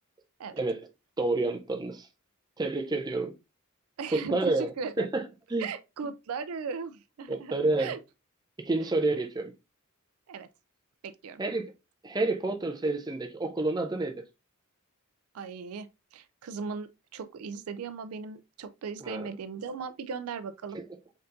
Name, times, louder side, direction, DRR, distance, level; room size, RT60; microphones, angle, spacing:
voice 1, 0.5-0.9 1.2-2.1 2.6-3.3 4.1-5.2 5.5-5.7 7.3-7.9 8.6-9.5 11.4-11.7 12.0-14.2 19.0-19.3 20.7-20.8, right 2 dB, 20° right, 0.5 m, -29 dB
voice 2, 4.0-5.1 5.6-8.0 10.3-10.5 11.0-11.4 15.3-20.8, right 5 dB, 85° right, 0.4 m, -38 dB
4.3 x 3.9 x 2.5 m
head